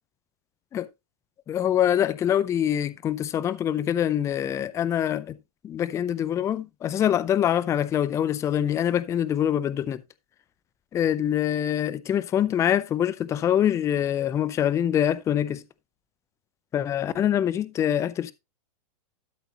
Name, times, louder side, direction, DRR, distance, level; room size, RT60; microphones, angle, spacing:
voice 1, 1.5-5.4 5.6-10.0 10.9-15.6 16.7-18.3, left 10 dB, 15° left, 0.5 m, -24 dB
12.5 x 6.7 x 2.9 m
hypercardioid pair, 145°, 19 cm